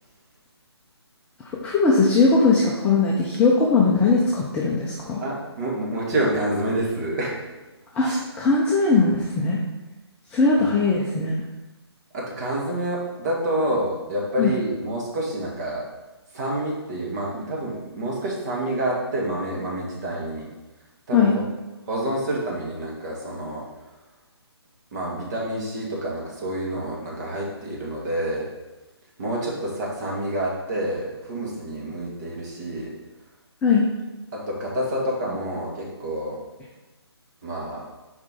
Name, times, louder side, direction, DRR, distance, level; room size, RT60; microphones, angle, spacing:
voice 1, 1.6-5.2 7.9-9.6 10.3-11.4 14.4-14.5 21.1-21.3 33.6-33.9, left 4 dB, 10° left, -5 dB, 0.5 m, -19 dB
voice 2, 5.2-7.4 8.0-8.2 12.1-15.8 16.3-20.5 21.1-21.4 21.9-23.7 24.9-28.5 29.2-32.9 34.3-36.4 37.4-37.8, right 1 dB, 40° right, -4 dB, 2.1 m, -28 dB
7.1 x 5.2 x 3.7 m, 1.1 s
figure-of-eight pair, 150°, 14 cm